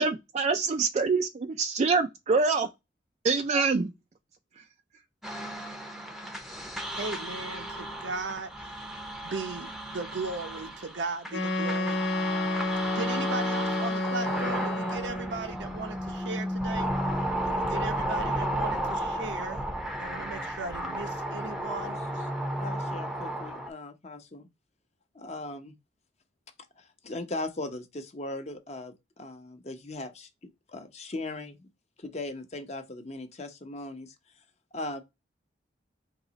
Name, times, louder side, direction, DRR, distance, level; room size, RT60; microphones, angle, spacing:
voice 1, 0.0-2.7 3.2-3.9, right 4 dB, 40° right, 0.3 m, -25 dB
sound 1, 5.2-23.7, right 1 dB, ahead, 0.6 m, -33 dB
voice 2, 6.9-8.5 9.2-12.0 12.9-16.9 17.4-19.7 20.0-22.3, right 3 dB, 85° right, 0.8 m, -37 dB
Wind instrument woodwind instrument, 11.3-15.4, left 1 dB, 80° left, 1.1 m, -30 dB
voice 3, 22.6-24.5 25.1-25.8 26.8-30.3 30.7-31.6 32.0-34.1 34.7-35.0, left 2 dB, 35° left, 0.8 m, -38 dB
3.9 x 2.9 x 4.0 m
head